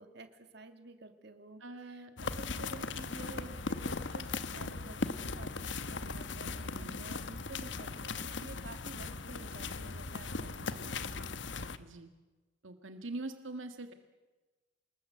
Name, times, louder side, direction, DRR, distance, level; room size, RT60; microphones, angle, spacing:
voice 1, 0.0-11.5, right 2 dB, 55° right, 8 dB, 2.4 m, -51 dB
voice 2, 1.6-2.1 6.6-7.1 10.6-11.0 11.8-12.1 12.6-13.9, right 2 dB, 85° right, 8 dB, 1.8 m, -44 dB
sound 1, 2.2-11.8, left 3 dB, 70° left, 1.3 m, -38 dB
27.5 x 20.5 x 7.7 m, 1.2 s
head